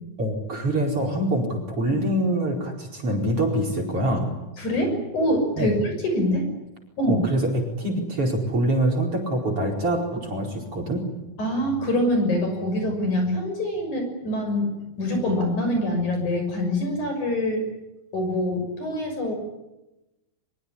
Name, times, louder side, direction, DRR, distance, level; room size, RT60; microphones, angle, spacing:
voice 1, 0.2-4.3 5.6-5.7 7.1-11.0, right 1 dB, 40° right, 1 dB, 5.4 m, -25 dB
voice 2, 4.6-6.5 7.0-7.2 11.4-14.7 15.0-17.6 18.1-19.3, left 1 dB, 55° left, 5 dB, 7.6 m, -24 dB
23.5 x 23.5 x 10.0 m, 0.97 s
omnidirectional pair, 4.2 m